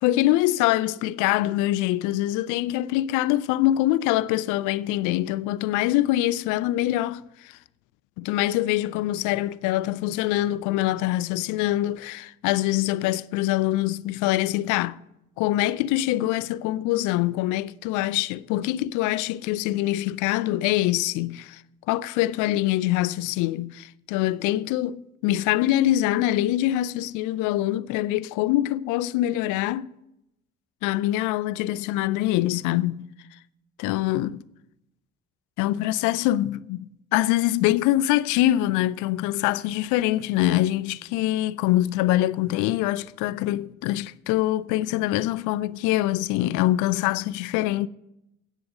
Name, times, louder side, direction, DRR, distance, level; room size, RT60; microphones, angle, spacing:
voice 1, 0.0-7.6 8.2-15.0 15.4-21.6 21.9-29.9 30.8-33.1 33.8-34.4 35.6-47.9, left 15 dB, 70° left, 0.5 m, -24 dB
9.0 x 7.6 x 7.4 m
hypercardioid pair, 50°, 31 cm